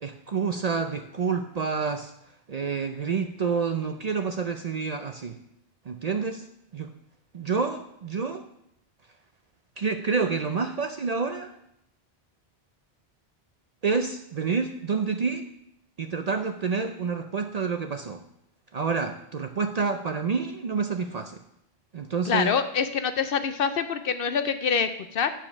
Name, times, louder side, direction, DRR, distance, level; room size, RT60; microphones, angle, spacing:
voice 1, 0.0-2.1 2.5-5.4 5.9-6.4 6.7-6.9 7.3-8.4 9.8-11.5 13.8-15.5 16.0-18.2 18.7-21.4 21.9-22.5, right 5 dB, 50° right, 6 dB, 0.5 m, -28 dB
voice 2, 22.3-25.3, left 6 dB, 65° left, 10 dB, 0.7 m, -25 dB
9.7 x 4.5 x 5.9 m, 0.75 s
omnidirectional pair, 1.1 m